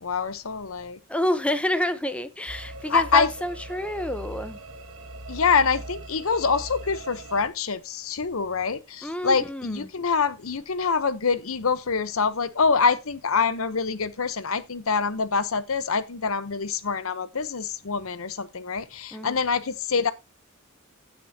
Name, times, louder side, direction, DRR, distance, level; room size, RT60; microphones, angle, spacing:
voice 1, 0.0-1.0 2.9-3.3 5.3-20.1, left 5 dB, 75° left, 0.9 m, -25 dB
voice 2, 1.1-4.6 9.0-9.9 19.1-19.4, left 1 dB, 5° left, 0.8 m, -28 dB
sound 1, 2.5-7.5, right 1 dB, 75° right, 1.2 m, -40 dB
16.0 x 6.2 x 2.8 m
head